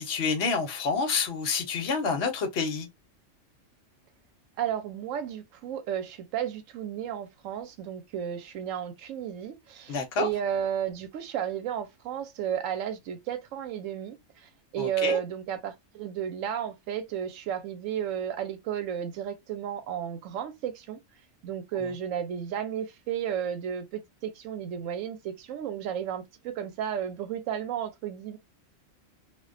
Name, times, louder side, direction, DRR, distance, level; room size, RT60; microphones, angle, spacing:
voice 1, 0.0-2.9 9.9-10.3 14.8-15.2, left 5 dB, 60° left, 0.9 m, -28 dB
voice 2, 4.6-21.0 21.4-28.4, right 9 dB, 90° right, 1.0 m, -33 dB
2.3 x 2.2 x 2.4 m
omnidirectional pair, 1.3 m